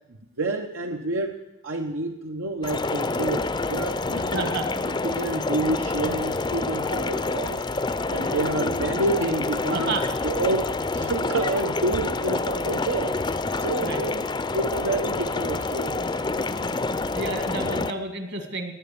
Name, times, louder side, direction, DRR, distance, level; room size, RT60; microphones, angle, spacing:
voice 1, 0.4-1.4 1.6-4.5 5.0-7.6 8.1-9.9 10.2-13.2 13.6-14.2 14.5-16.1, right 2 dB, 80° right, 3 dB, 1.0 m, -28 dB
sound 1, 2.6-17.9, left 3 dB, 20° left, 0.5 m, -27 dB
voice 2, 4.3-4.8 8.2-8.4 9.7-10.0 13.8-14.0 17.1-18.7, right 3 dB, 55° right, 7 dB, 1.9 m, -30 dB
18.0 x 9.5 x 7.0 m, 0.94 s
head